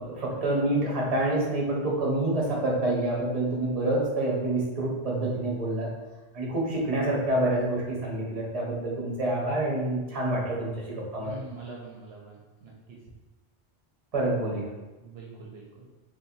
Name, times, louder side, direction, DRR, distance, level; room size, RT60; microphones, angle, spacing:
voice 1, 0.0-5.9 6.3-11.4 14.1-14.7, right 1 dB, 40° right, -4 dB, 0.9 m, -27 dB
voice 2, 11.2-13.0 15.0-15.9, right 2 dB, 70° right, -3 dB, 0.8 m, -44 dB
4.0 x 2.5 x 2.7 m, 1.1 s
omnidirectional pair, 1.1 m